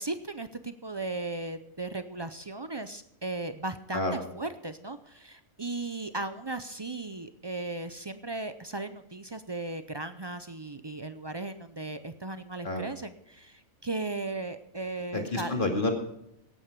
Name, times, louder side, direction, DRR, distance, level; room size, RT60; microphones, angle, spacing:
voice 1, 0.0-15.6, right 2 dB, 35° right, 10 dB, 0.4 m, -36 dB
voice 2, 3.9-4.2 12.6-12.9 15.1-15.9, left 2 dB, 40° left, 2 dB, 2.4 m, -29 dB
17.0 x 8.9 x 5.3 m, 0.79 s
omnidirectional pair, 1.4 m